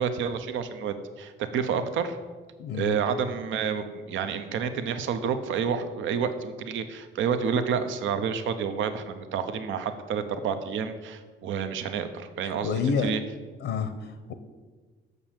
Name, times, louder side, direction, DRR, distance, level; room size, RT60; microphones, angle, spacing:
voice 1, 0.0-2.2 2.7-12.7 13.0-13.2, right 6 dB, 75° right, 9 dB, 0.8 m, -29 dB
voice 2, 2.6-3.0 12.4-13.1 13.6-14.3, left 6 dB, 75° left, 9 dB, 0.7 m, -29 dB
6.8 x 6.3 x 7.4 m, 1.4 s
cardioid pair, 90°, 20 cm